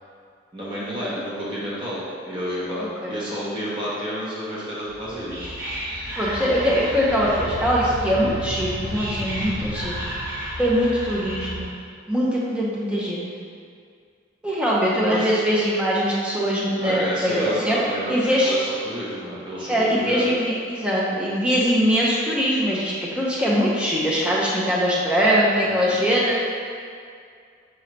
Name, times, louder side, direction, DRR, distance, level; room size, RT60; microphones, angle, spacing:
voice 1, 0.5-5.6 15.1-15.3 16.8-20.3 25.7-26.0, equal, 25° right, -8 dB, 0.9 m, -30 dB
Whispering, 4.9-11.8, equal, 50° right, 1.2 m, -32 dB
voice 2, 6.2-10.1 10.6-11.7 12.1-13.3 14.4-17.8 18.1-18.6 19.7-26.4, equal, 5° right, -6 dB, 0.6 m, -22 dB
sound 1, 7.0-10.7, left 2 dB, 55° left, 0.4 m, -35 dB
4.8 x 3.1 x 3.1 m, 2.2 s
head